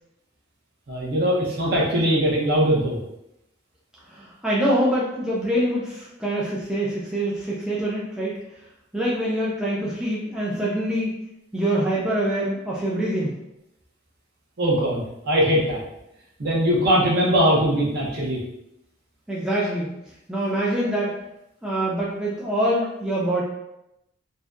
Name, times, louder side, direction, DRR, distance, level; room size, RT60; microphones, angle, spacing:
voice 1, 0.9-3.0 14.6-15.8 16.4-18.4, equal, 50° right, -4 dB, 0.6 m, -21 dB
voice 2, 4.1-8.4 8.9-11.1 11.5-13.3 19.3-19.9 20.3-21.1 21.6-23.4, right 1 dB, 5° right, -7 dB, 0.3 m, -25 dB
2.6 x 2.1 x 2.3 m, 0.86 s
head